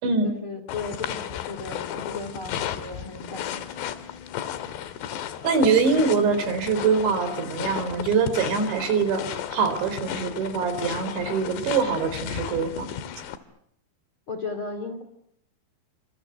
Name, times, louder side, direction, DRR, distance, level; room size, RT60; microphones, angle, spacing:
voice 1, 0.2-3.9 14.3-15.0, left 3 dB, 35° left, 7 dB, 2.6 m, -35 dB
sound 1, 0.7-13.4, left 10 dB, 70° left, 3.4 m, -34 dB
voice 2, 5.4-12.9, right 5 dB, 70° right, 9 dB, 6.1 m, -24 dB
28.0 x 26.5 x 8.0 m, 0.74 s
omnidirectional pair, 5.5 m